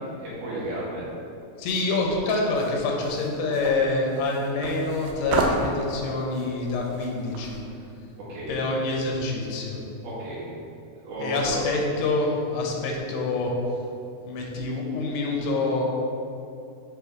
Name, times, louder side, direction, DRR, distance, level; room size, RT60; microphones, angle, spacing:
voice 1, 0.2-1.0 7.7-7.9 8.3-8.5 10.0-10.4 11.0-11.6, right 1 dB, 65° right, -9 dB, 3.3 m, -33 dB
voice 2, 1.6-7.6 8.5-9.8 11.2-13.5 14.3-15.8, left 3 dB, 80° left, 0 dB, 2.9 m, -26 dB
sound 1, 2.5-7.6, right 3 dB, 90° right, 2.9 m, -31 dB
8.8 x 3.8 x 3.6 m, 2.6 s
omnidirectional pair, 4.9 m